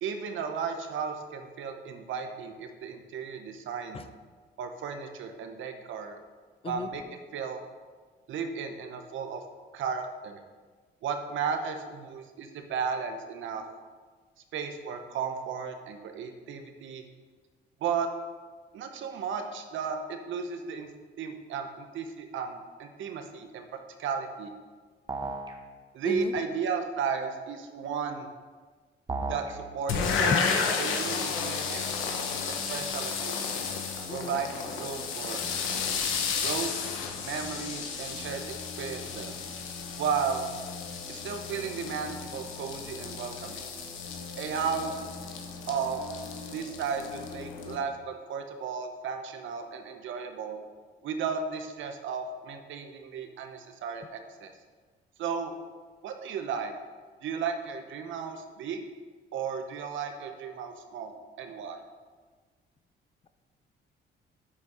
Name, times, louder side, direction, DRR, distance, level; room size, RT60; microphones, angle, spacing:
voice 1, 0.0-4.0 4.6-6.2 6.7-7.0 7.3-7.6 8.3-9.4 9.7-10.4 11.0-13.6 14.5-17.0 17.8-18.1 18.7-20.9 21.2-23.7 24.0-24.5 25.9-28.3 29.3-30.4 30.8-31.9 32.5-33.6 34.1-35.4 36.4-36.7 37.2-38.4 38.8-39.3 40.0-40.5 41.1-43.6 44.4-45.0 45.7-46.0 46.5-50.6 51.0-54.5 55.2-55.5 56.0-56.7 57.2-58.8 59.3-61.8, right 6 dB, 75° right, 6 dB, 0.8 m, -34 dB
sound 1, 25.1-25.6 29.1-29.6, right 3 dB, 20° right, 0.8 m, -33 dB
sound 2, 29.9-47.8, left 5 dB, 85° left, 1.0 m, -33 dB
voice 2, 34.1-34.4, left 5 dB, 30° left, 10 dB, 0.5 m, -33 dB
7.4 x 4.3 x 4.8 m, 1.5 s
cardioid pair, 90°, 20 cm